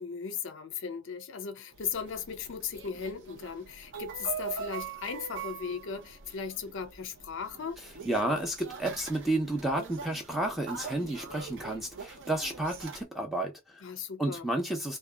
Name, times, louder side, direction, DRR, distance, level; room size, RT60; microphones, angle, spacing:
voice 1, 0.0-7.8 13.8-14.5, left 6 dB, 55° left, 0.4 m, -37 dB
sound 1, 1.7-13.0, right 6 dB, 55° right, 0.6 m, -43 dB
voice 2, 8.1-13.8 14.2-15.0, right 1 dB, ahead, 0.6 m, -31 dB
2.7 x 2.1 x 2.2 m
head